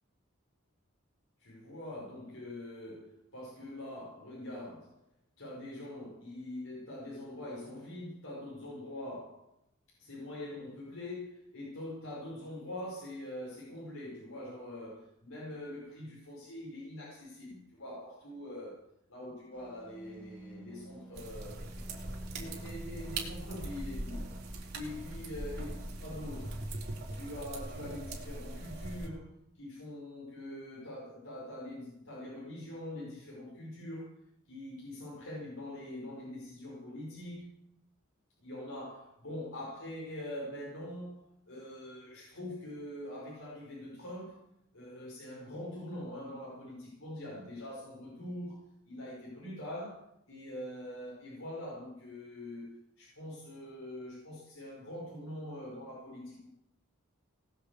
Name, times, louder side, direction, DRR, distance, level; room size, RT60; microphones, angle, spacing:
voice 1, 1.4-5.0 5.4-9.5 10.0-18.8 19.1-21.6 22.3-24.2 24.7-26.6 27.1-37.5 38.4-44.4 44.7-56.5, left 1 dB, 70° left, -5 dB, 5.2 m, -44 dB
sound 1, 19.5-26.7, right 1 dB, 5° left, 2.2 m, -51 dB
sound 2, 21.1-29.1, right 2 dB, 50° right, 3.6 m, -41 dB
19.0 x 8.3 x 8.2 m, 0.77 s
head